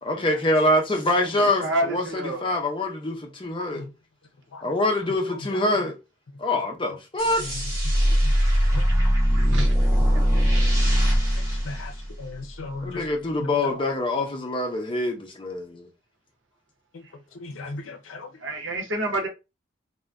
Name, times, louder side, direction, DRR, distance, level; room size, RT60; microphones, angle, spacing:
voice 1, 0.0-3.9 4.6-6.0 6.4-7.5 12.8-15.9, left 1 dB, 25° left, 0.6 m, -25 dB
voice 2, 1.6-2.5 9.5-9.7 10.1-10.2 18.4-19.3, right 1 dB, 70° right, 0.9 m, -28 dB
sound 1, 7.2-12.5, equal, 15° right, 0.9 m, -21 dB
voice 3, 12.2-12.9 13.4-13.5 17.4-18.3, left 2 dB, 85° left, 0.5 m, -35 dB
2.5 x 2.1 x 3.3 m
head